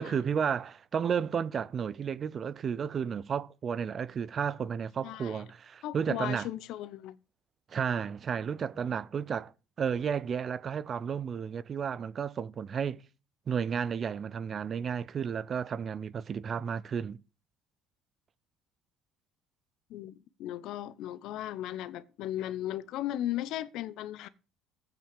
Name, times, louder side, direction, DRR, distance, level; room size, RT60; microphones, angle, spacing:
voice 1, 0.0-6.5 7.7-9.5 9.8-13.0 13.5-17.2, right 7 dB, 45° right, 0.5 m, -32 dB
voice 2, 5.0-5.4 5.8-7.2 19.9-24.3, left 13 dB, 65° left, 0.8 m, -36 dB
8.9 x 5.7 x 7.3 m
hypercardioid pair, 65°, 0 cm